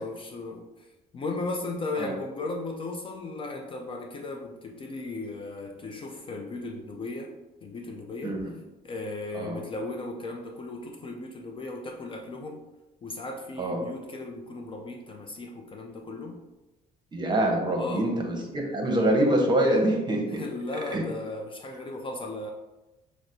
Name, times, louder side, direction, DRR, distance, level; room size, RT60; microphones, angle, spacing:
voice 1, 0.0-8.4 8.8-12.6 13.0-16.4 17.7-18.1 20.3-22.5, left 2 dB, 30° left, 2 dB, 0.4 m, -36 dB
voice 2, 8.2-8.5 9.3-9.6 13.6-13.8 17.1-20.5 20.9-21.1, right 1 dB, 25° right, 1 dB, 0.8 m, -25 dB
5.8 x 2.0 x 2.6 m, 1.0 s
cardioid pair, 110°, 17 cm